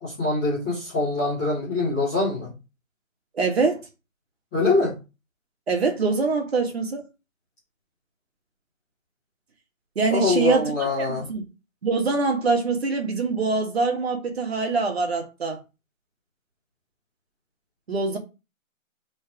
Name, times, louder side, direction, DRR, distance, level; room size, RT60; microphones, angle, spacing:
voice 1, 0.0-2.5 4.5-5.0 10.1-11.3, left 3 dB, 5° left, 0.9 m, -24 dB
voice 2, 3.3-3.9 5.7-7.0 10.0-10.7 11.1-11.4 11.8-15.6 17.9-18.2, right 4 dB, 50° right, 1.7 m, -24 dB
5.3 x 3.9 x 4.7 m
hypercardioid pair, 165°, 41 cm